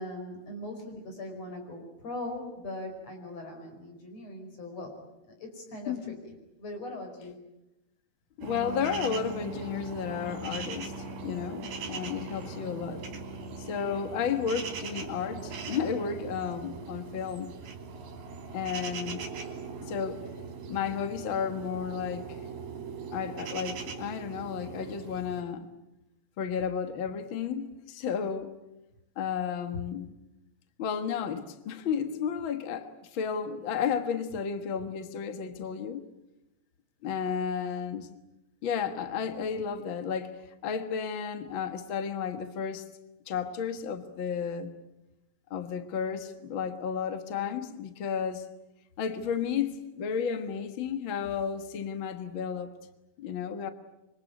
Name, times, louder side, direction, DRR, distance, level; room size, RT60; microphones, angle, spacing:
voice 1, 0.0-4.9 5.4-7.4, left 1 dB, 40° left, 6.2 m, -40 dB
voice 2, 5.9-6.2 8.4-10.9 11.2-13.0 13.6-17.5 18.5-19.3 19.8-20.3 20.7-22.4 23.1-25.7 26.4-28.6 29.1-30.1 30.8-36.1 37.0-38.1 38.6-42.9 43.3-44.7 45.5-48.5 49.0-52.7 53.2-53.7, left 7 dB, 65° left, 1.2 m, -32 dB
sound 1, 8.4-25.4, right 4 dB, 70° right, 4.8 m, -40 dB
26.5 x 24.5 x 9.3 m
omnidirectional pair, 4.6 m